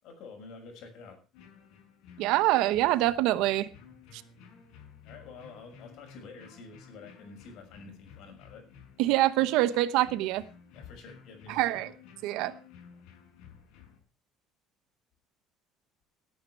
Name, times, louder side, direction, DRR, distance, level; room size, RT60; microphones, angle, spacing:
voice 1, 0.0-1.2 5.0-8.6 10.7-11.6, left 4 dB, 65° left, 6.3 m, -48 dB
sound 1, 1.3-14.0, left 6 dB, 80° left, 5.5 m, -54 dB
voice 2, 2.2-3.7 9.0-10.4 11.5-11.9 12.2-12.5, right 15 dB, 80° right, 1.0 m, -25 dB
18.0 x 9.7 x 4.7 m
cardioid pair, 145°, 0 cm